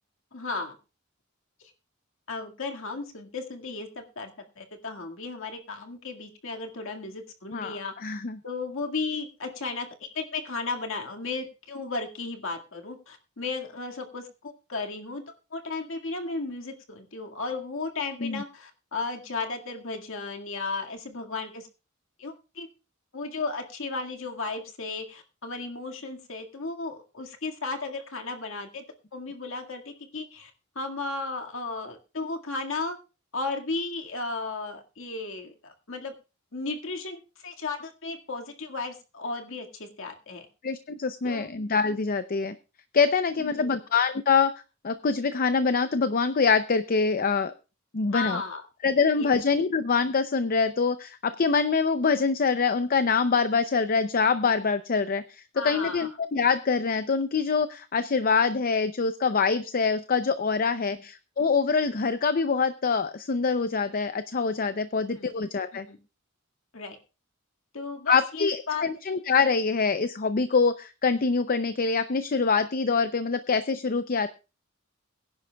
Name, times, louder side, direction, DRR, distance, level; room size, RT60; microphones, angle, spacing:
voice 1, 0.3-0.8 2.3-4.3 4.6-7.9 8.4-15.2 15.5-21.7 22.2-22.7 23.1-28.8 29.1-30.5 30.8-33.0 33.3-36.1 36.5-40.5 41.2-41.5 43.4-43.8 48.1-48.6 49.2-49.4 55.5-56.1 60.9-61.0 65.1-65.3 65.7-66.0 66.7-67.0 67.7-68.9, left 3 dB, 70° left, 3 dB, 2.0 m, -34 dB
voice 2, 8.0-8.4 18.2-18.4 40.6-42.5 42.9-44.5 44.8-47.5 47.9-48.4 48.8-65.9 68.1-74.3, left 5 dB, 45° left, 11 dB, 0.6 m, -25 dB
22.5 x 10.5 x 2.3 m, 0.31 s
head